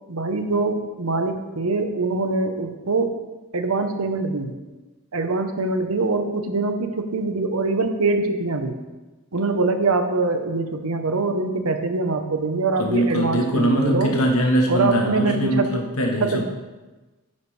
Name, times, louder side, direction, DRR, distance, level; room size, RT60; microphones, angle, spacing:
voice 1, 0.1-3.1 3.5-4.5 5.1-8.8 9.3-14.1 14.7-15.8 16.2-16.4, right 3 dB, 85° right, 7 dB, 1.0 m, -23 dB
voice 2, 12.8-16.4, equal, 90° left, 1 dB, 1.4 m, -22 dB
9.7 x 9.7 x 3.3 m, 1.2 s
head